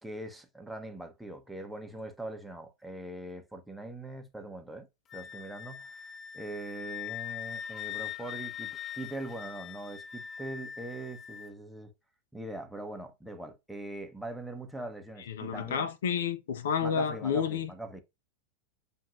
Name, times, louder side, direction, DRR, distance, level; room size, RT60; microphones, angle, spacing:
voice 1, 0.0-4.9 5.1-11.9 12.3-15.9 16.8-18.0, right 1 dB, 5° right, 0.9 m, -42 dB
Wind instrument woodwind instrument, 5.1-11.5, left 9 dB, 30° left, 0.5 m, -41 dB
voice 2, 15.3-17.7, left 7 dB, 75° left, 0.7 m, -30 dB
7.2 x 2.6 x 2.5 m
hypercardioid pair, 100°, 0 cm